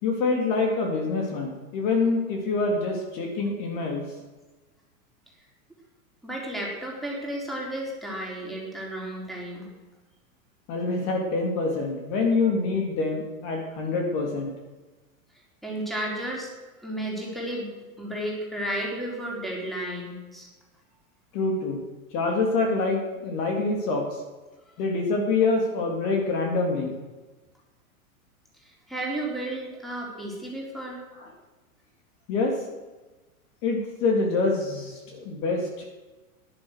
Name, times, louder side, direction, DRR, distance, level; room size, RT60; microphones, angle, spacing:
voice 1, 0.0-4.0 10.7-14.5 21.3-21.8 22.1-24.0 24.8-26.9 31.2-31.3 32.3-32.5 33.6-35.8, left 3 dB, 45° left, 2 dB, 3.1 m, -26 dB
voice 2, 6.2-9.7 15.6-16.5 16.8-17.7 18.0-20.5 28.6-31.0, right 1 dB, ahead, -3 dB, 4.0 m, -33 dB
16.5 x 11.0 x 6.6 m, 1.2 s
supercardioid pair, 140°, 43 cm